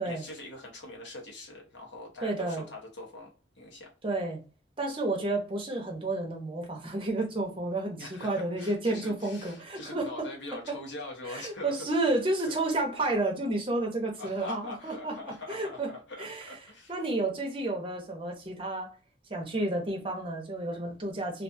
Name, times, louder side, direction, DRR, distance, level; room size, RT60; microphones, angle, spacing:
voice 1, 0.0-3.9 8.0-12.0 14.2-16.9, left 2 dB, 80° left, 1.0 m, -43 dB
voice 2, 2.2-2.6 4.0-4.4 4.8-10.1 11.3-15.1 15.5-15.9 16.2-16.5 16.9-18.9 19.3-21.4, right 2 dB, 30° right, 0.7 m, -31 dB
2.4 x 2.3 x 2.6 m
head